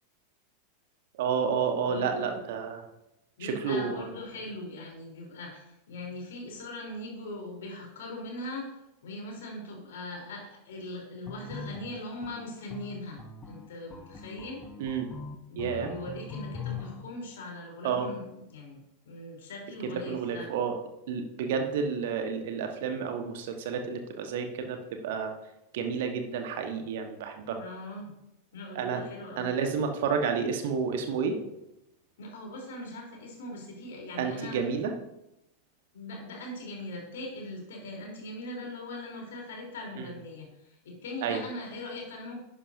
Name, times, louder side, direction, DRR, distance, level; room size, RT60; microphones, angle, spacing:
voice 1, 1.1-2.9 3.4-4.1 14.8-15.1 15.6-15.9 17.8-18.1 19.9-20.7 21.1-25.3 25.7-27.6 28.7-29.0 29.4-31.4 34.2-34.9 40.0-40.1 41.2-41.4, right 6 dB, 55° right, 5 dB, 1.3 m, -30 dB
voice 2, 1.8-2.5 3.4-8.8 9.0-14.6 15.5-20.5 27.6-28.1 28.5-29.6 32.2-34.6 35.9-42.4, left 1 dB, 60° left, 0 dB, 3.5 m, -40 dB
sound 1, 11.3-17.0, left 5 dB, 15° left, 1.0 m, -41 dB
11.5 x 9.9 x 2.7 m, 0.87 s
figure-of-eight pair, 90°, 0 cm